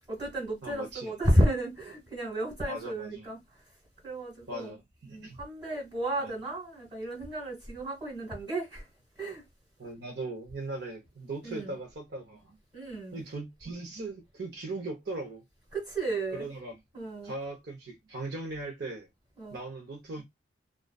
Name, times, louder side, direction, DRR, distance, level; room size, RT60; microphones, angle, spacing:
voice 1, 0.1-3.4 4.0-4.8 5.1-8.8 9.2-9.4 11.4-11.8 12.7-13.2 15.7-16.5 16.9-17.3 19.4-19.6, right 1 dB, 15° right, 1.2 m, -32 dB
voice 2, 0.6-1.2 2.7-3.3 4.5-5.4 6.2-6.3 9.8-12.6 13.1-15.4 16.3-16.7 17.2-19.1 19.5-20.2, right 2 dB, 60° right, 0.6 m, -39 dB
2.4 x 2.3 x 2.2 m
head